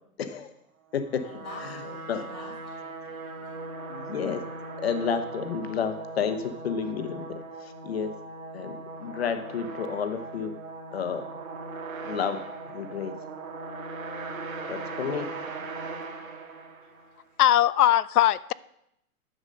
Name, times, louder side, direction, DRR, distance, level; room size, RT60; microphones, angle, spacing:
voice 1, 0.2-0.5 0.9-1.2 1.6-1.8 2.1-2.2 3.9-4.4 4.8-7.2 7.6-8.1 8.5-10.5 10.9-11.2 12.0-12.4 12.7-13.1 14.7-15.3, left 7 dB, 45° left, 9 dB, 0.9 m, -30 dB
sound 1, 0.9-17.2, right 3 dB, 70° right, 1.7 m, -39 dB
voice 2, 1.2-3.5, left 2 dB, 5° left, -12 dB, 0.5 m, -45 dB
voice 3, 17.4-18.5, left 12 dB, 90° left, 19 dB, 0.6 m, -20 dB
10.0 x 7.2 x 5.2 m, 0.78 s
hypercardioid pair, 170°, 44 cm